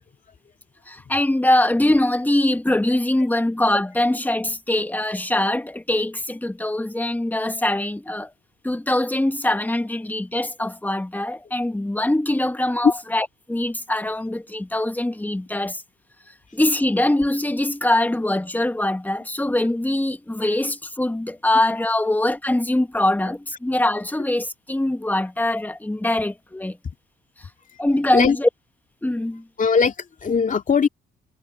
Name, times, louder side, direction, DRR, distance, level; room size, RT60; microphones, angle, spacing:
voice 1, 0.9-8.3 8.6-15.8 16.5-26.8 27.4-27.5 27.8-28.5 29.0-29.5, left 1 dB, 10° left, 1.5 m, -23 dB
voice 2, 29.6-30.9, left 5 dB, 40° left, 2.3 m, -20 dB
cardioid pair, 90°, 20 cm